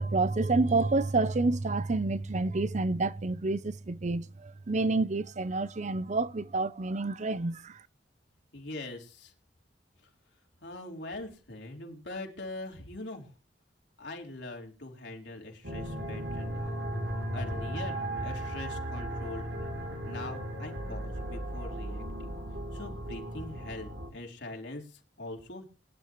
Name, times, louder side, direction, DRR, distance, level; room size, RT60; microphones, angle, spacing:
voice 1, 0.0-7.8, right 3 dB, 40° right, 0.6 m, -29 dB
voice 2, 8.5-9.3 10.6-13.3 14.0-16.8 17.3-19.7 20.0-22.4 22.7-25.7, left 2 dB, 70° left, 4.1 m, -42 dB
sound 1, 15.6-24.1, right 1 dB, 80° right, 3.4 m, -36 dB
22.5 x 12.0 x 3.1 m
head